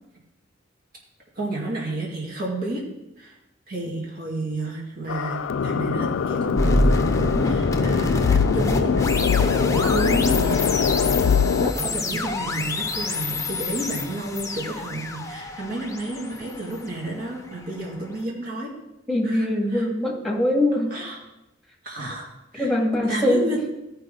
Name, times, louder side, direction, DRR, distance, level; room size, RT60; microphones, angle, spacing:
voice 1, 1.3-2.8 3.2-3.3 3.7-11.1 11.6-18.7 19.2-19.8 20.9-21.2 21.8-22.3 22.5-22.7 23.0-23.6, right 2 dB, 50° right, -3 dB, 2.3 m, -31 dB
sound 1, 5.1-11.7, left 6 dB, 80° left, 0.3 m, -22 dB
sound 2, 6.6-17.6, left 2 dB, 15° left, 0.7 m, -27 dB
voice 2, 19.1-20.9 22.6-23.5, left 1 dB, ahead, -2 dB, 2.2 m, -22 dB
14.0 x 5.7 x 3.9 m, 0.94 s
head